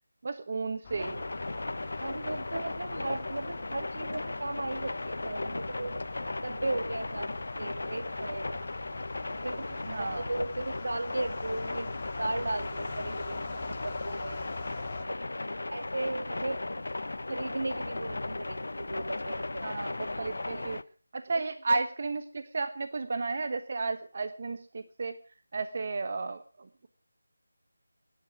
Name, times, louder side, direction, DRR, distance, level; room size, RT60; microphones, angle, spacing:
voice 1, 0.2-1.1 9.9-10.3 19.6-20.8 21.1-25.2 25.5-26.9, right 3 dB, 40° right, 10 dB, 1.1 m, -33 dB
sound 1, 0.8-15.1, left 4 dB, 25° left, 2.6 m, -44 dB
voice 2, 0.9-1.2 2.0-6.0 6.4-8.7 9.4-11.9 12.2-14.4 15.0-15.2 15.7-16.6 17.3-20.7 21.3-21.8, right 2 dB, 75° right, 8 dB, 2.5 m, -36 dB
sound 2, 1.0-20.8, left 2 dB, 70° left, 1.0 m, -37 dB
20.5 x 11.5 x 6.0 m, 0.40 s
figure-of-eight pair, 170°, 0 cm